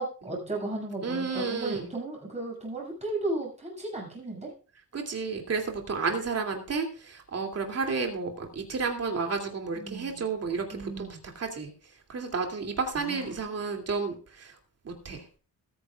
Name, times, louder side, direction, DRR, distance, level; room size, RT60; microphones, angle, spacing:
voice 1, 0.0-4.5 9.7-10.3 10.7-11.2 12.9-13.8, right 2 dB, 20° right, -2 dB, 6.7 m, -35 dB
voice 2, 1.0-1.9 4.9-11.1 11.3-11.7 12.1-14.6 14.8-15.2, right 4 dB, 45° right, 3 dB, 2.7 m, -31 dB
21.0 x 9.5 x 2.4 m, 0.38 s
wide cardioid pair, 150°, 34 cm